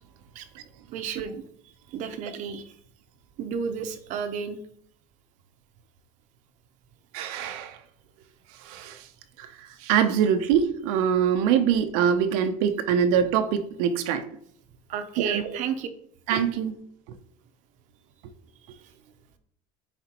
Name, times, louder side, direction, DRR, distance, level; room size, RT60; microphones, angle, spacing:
voice 1, 0.9-1.4 1.9-2.7 3.4-4.6 14.9-15.9 18.7-18.8, right 7 dB, 45° right, 0.7 m, -32 dB
voice 2, 7.1-7.8 8.6-9.1 9.4-9.5 9.8-14.3 15.2-15.6 16.3-16.7, right 8 dB, 85° right, 0.6 m, -24 dB
9.9 x 4.2 x 2.9 m
cardioid pair, 170°, 18 cm